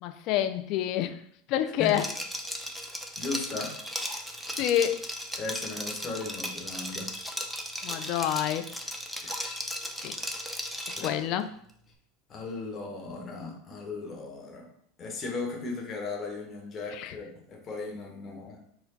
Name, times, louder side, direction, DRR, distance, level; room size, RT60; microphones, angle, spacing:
voice 1, 0.0-1.2 1.5-2.1 4.1-4.2 4.5-5.0 7.8-8.7 10.0-10.1 11.0-11.5 16.9-17.1, left 11 dB, 55° left, 10 dB, 0.3 m, -28 dB
Liquid, 1.9-11.2, equal, 5° right, 0.6 m, -36 dB
voice 2, 3.2-3.7 5.4-7.1 9.2-9.6 11.0-11.2 12.3-14.7 15.0-18.6, left 3 dB, 35° left, 2 dB, 1.1 m, -37 dB
4.4 x 2.2 x 4.0 m, 0.66 s
hypercardioid pair, 90°, 0 cm